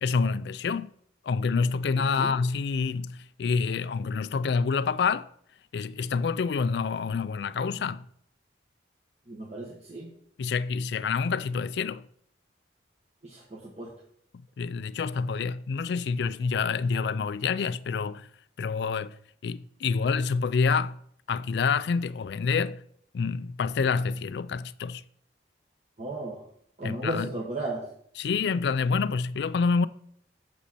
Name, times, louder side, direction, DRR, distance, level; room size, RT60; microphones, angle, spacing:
voice 1, 0.0-0.9 1.3-5.3 5.7-8.0 10.4-12.0 14.6-18.3 18.6-19.1 19.4-21.0 21.3-22.8 23.1-25.0 26.8-27.3 28.2-29.9, left 5 dB, 65° left, 0.3 m, -27 dB
voice 2, 1.9-2.3 9.3-10.1 13.2-13.9 26.0-26.4 26.8-27.8, right 2 dB, 35° right, 1.4 m, -35 dB
8.3 x 6.3 x 4.2 m
head